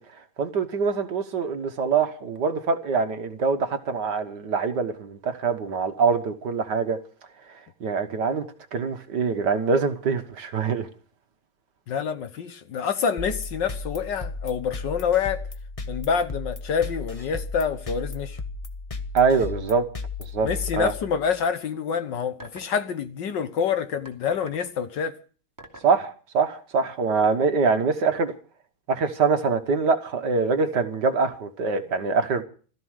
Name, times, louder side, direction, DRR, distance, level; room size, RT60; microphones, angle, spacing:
voice 1, 0.4-7.0 7.8-8.4 8.7-10.9 19.1-19.9 20.3-20.5 20.8-20.9 25.8-28.3 28.9-32.4, right 5 dB, 55° right, 1.7 m, -24 dB
voice 2, 11.9-15.4 15.9-18.4 20.4-25.1, left 7 dB, 60° left, 1.5 m, -27 dB
sound 1, 13.2-21.3, left 3 dB, 25° left, 0.8 m, -35 dB
sound 2, 22.4-22.8 24.1-24.7 25.6-26.0 27.2-27.3, right 1 dB, 10° right, 2.4 m, -44 dB
16.5 x 14.0 x 6.4 m
omnidirectional pair, 2.3 m